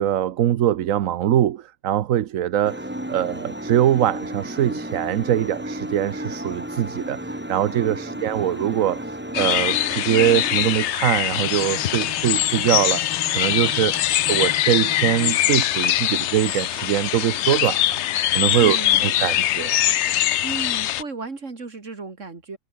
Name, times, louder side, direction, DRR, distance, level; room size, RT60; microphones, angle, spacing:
voice 1, 0.0-18.0 18.3-19.8, right 11 dB, 80° right, 1.2 m, -23 dB
sound 1, 2.6-10.8, right 1 dB, 10° right, 2.3 m, -32 dB
voice 2, 7.9-8.3 18.6-19.3 20.4-22.6, right 4 dB, 65° right, 3.1 m, -35 dB
sound 2, 9.3-21.0, left 13 dB, 65° left, 0.8 m, -22 dB
Bowed string instrument, 11.3-15.5, left 3 dB, 20° left, 0.9 m, -37 dB
omnidirectional pair, 1.4 m